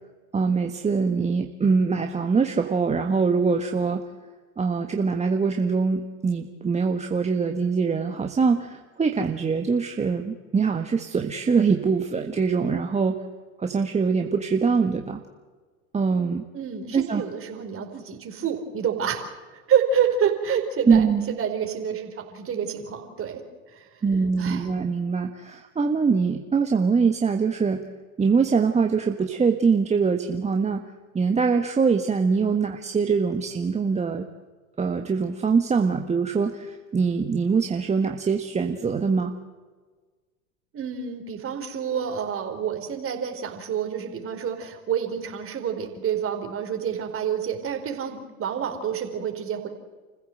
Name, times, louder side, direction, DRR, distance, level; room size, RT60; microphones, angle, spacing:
voice 1, 0.3-4.0 4.6-13.2 13.6-15.2 15.9-16.4 16.9-17.2 20.9-21.3 24.0-27.8 28.2-30.8 31.1-34.2 34.8-39.3, right 5 dB, 15° right, 4 dB, 1.5 m, -23 dB
voice 2, 16.5-19.2 19.5-23.4 23.7-23.9 24.4-24.7 40.7-49.7, right 7 dB, 30° right, 5 dB, 4.3 m, -28 dB
29.5 x 15.0 x 7.8 m, 1.4 s
hypercardioid pair, 95°, 42 cm